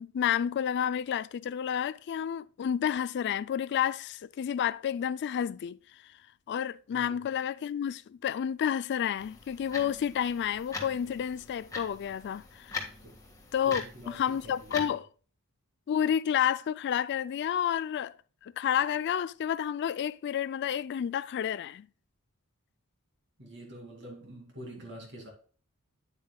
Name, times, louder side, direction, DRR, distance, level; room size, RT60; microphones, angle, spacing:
voice 1, 0.0-5.8 6.5-12.8 13.5-15.1 15.9-18.1 18.4-21.9, left 9 dB, 50° left, 0.3 m, -30 dB
voice 2, 6.9-7.2 13.0-13.2 13.6-15.0 23.4-25.3, right 1 dB, 55° right, 2.5 m, -46 dB
sound 1, 9.2-14.9, left 4 dB, 15° left, 1.5 m, -42 dB
9.1 x 8.4 x 2.3 m
head